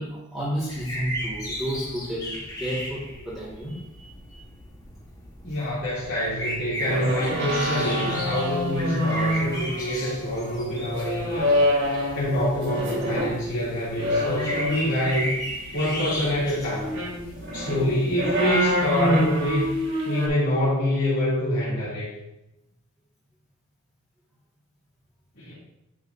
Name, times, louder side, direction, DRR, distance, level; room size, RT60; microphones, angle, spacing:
voice 1, 0.0-4.5, equal, ahead, -10 dB, 2.0 m, -32 dB
sound 1, 0.7-19.7, equal, 20° left, 1.7 m, -36 dB
voice 2, 5.4-11.6 12.1-15.3 15.7-16.9 17.5-19.7 20.0-22.1 25.4-25.5, left 1 dB, 60° left, -10 dB, 3.0 m, -26 dB
sound 2, 6.8-13.4 14.0-15.2 16.7-20.3, equal, 55° right, 3.2 m, -26 dB
9.6 x 7.0 x 2.7 m, 0.91 s
head